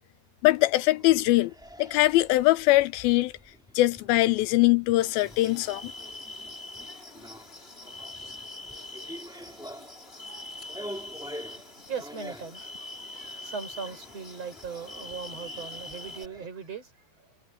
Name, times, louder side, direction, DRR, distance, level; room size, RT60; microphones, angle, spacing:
voice 1, 0.4-1.5 1.8-3.3 3.8-5.9, left 18 dB, 80° left, 2.2 m, -22 dB
sound 1, 0.6-16.5, equal, ahead, 1.0 m, -47 dB
sound 2, 5.0-16.2, left 2 dB, 15° left, 2.6 m, -43 dB
voice 2, 11.9-16.9 17.2-17.3, right 6 dB, 40° right, 6.6 m, -39 dB
omnidirectional pair, 4.7 m